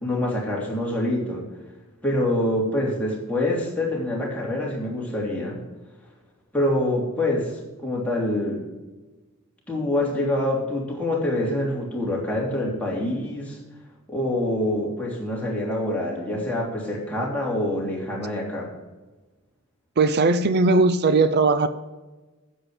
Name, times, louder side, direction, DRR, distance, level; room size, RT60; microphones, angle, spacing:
voice 1, 0.0-1.4 2.0-5.6 6.5-8.6 9.7-13.6 14.1-18.7, left 1 dB, 5° left, -3 dB, 3.1 m, -26 dB
voice 2, 20.0-21.7, right 3 dB, 50° right, 12 dB, 0.6 m, -18 dB
10.0 x 7.7 x 6.5 m, 1.2 s
head